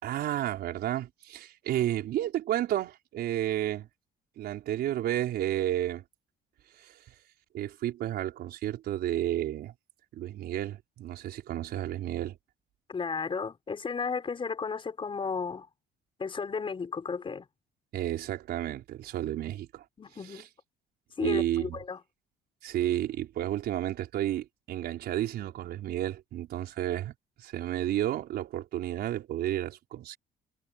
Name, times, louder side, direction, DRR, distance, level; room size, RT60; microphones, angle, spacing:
voice 1, 0.0-3.9 4.4-6.0 6.8-7.1 7.5-9.7 10.1-12.4 17.9-19.8 20.2-20.4 21.2-21.8 22.6-30.2, right 13 dB, 70° right, 5.1 m, -31 dB
voice 2, 12.9-15.7 16.2-17.5 20.0-20.5 21.2-22.0, left 5 dB, 30° left, 5.6 m, -33 dB
cardioid pair, 110°, 17 cm